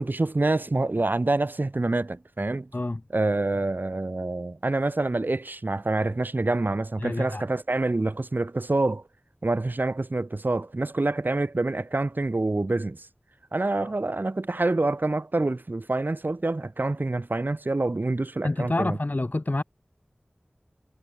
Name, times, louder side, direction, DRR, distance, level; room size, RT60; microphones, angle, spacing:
voice 1, 0.0-2.7 3.1-9.0 9.4-13.1 13.5-19.0, right 2 dB, 65° right, 3.0 m, -26 dB
voice 2, 7.0-7.4 13.8-13.9 18.4-19.6, left 2 dB, 55° left, 2.7 m, -27 dB
wide cardioid pair, 40°, 4 cm